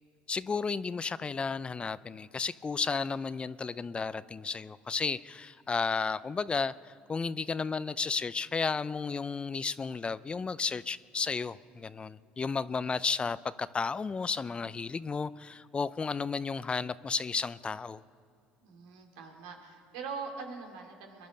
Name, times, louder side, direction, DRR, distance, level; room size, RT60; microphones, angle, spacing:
voice 1, 0.3-18.0, left 5 dB, 25° left, 17 dB, 0.5 m, -33 dB
voice 2, 18.6-21.3, right 5 dB, 85° right, 3 dB, 2.5 m, -42 dB
22.5 x 11.0 x 5.2 m, 2.4 s
supercardioid pair, 80°, 4 cm